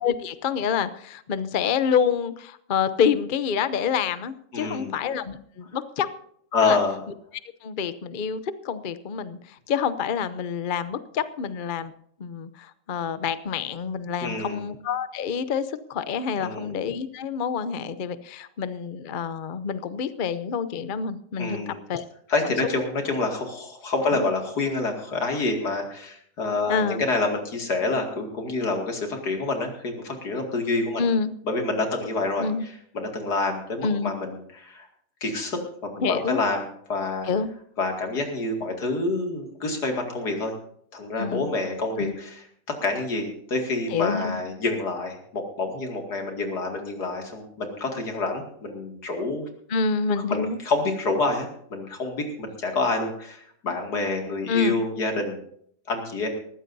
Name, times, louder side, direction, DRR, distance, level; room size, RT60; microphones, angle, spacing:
voice 1, 0.0-6.1 6.6-6.8 7.6-11.9 12.2-22.0 22.4-22.5 24.1-24.2 26.7-27.0 31.0-31.3 32.4-32.6 33.8-34.1 36.0-36.4 37.2-37.5 41.2-41.5 42.0-42.1 43.9-44.4 49.7-50.6 54.5-54.8, left 6 dB, 50° left, 13 dB, 0.6 m, -27 dB
voice 2, 4.5-4.9 6.5-7.0 14.2-14.6 16.4-16.7 21.4-21.8 22.3-31.0 31.4-34.9 35.2-37.3 37.8-40.5 40.9-42.4 42.7-49.4 50.3-55.4 55.9-56.3, left 3 dB, 75° left, 3 dB, 2.9 m, -27 dB
20.0 x 14.5 x 2.7 m, 0.67 s
omnidirectional pair, 1.7 m